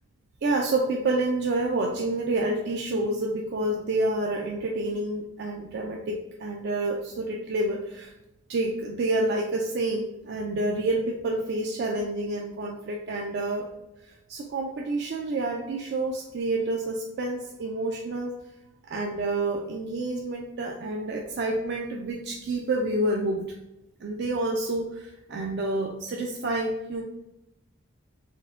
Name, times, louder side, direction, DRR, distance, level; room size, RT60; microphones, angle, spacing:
voice 1, 0.4-8.1 8.5-13.7 14.0-18.3 18.8-23.5 24.0-27.0, right 2 dB, 50° right, 0 dB, 0.3 m, -28 dB
4.4 x 2.1 x 3.5 m, 0.91 s
head